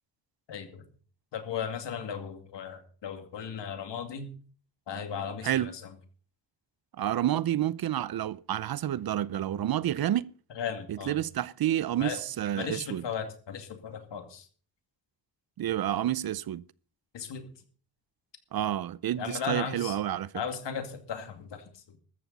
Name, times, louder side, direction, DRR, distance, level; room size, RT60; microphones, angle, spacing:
voice 1, 0.5-0.8 1.3-4.3 4.9-5.7 10.6-11.2 12.0-12.2 12.6-14.5 17.1-17.5 19.2-20.0 20.3-21.8, left 7 dB, 85° left, 2.4 m, -36 dB
voice 2, 5.4-5.7 7.0-10.3 10.9-13.0 15.6-16.6 18.5-20.3, right 12 dB, 60° right, 0.6 m, -29 dB
14.0 x 14.0 x 4.1 m
wide cardioid pair, 115°, 42 cm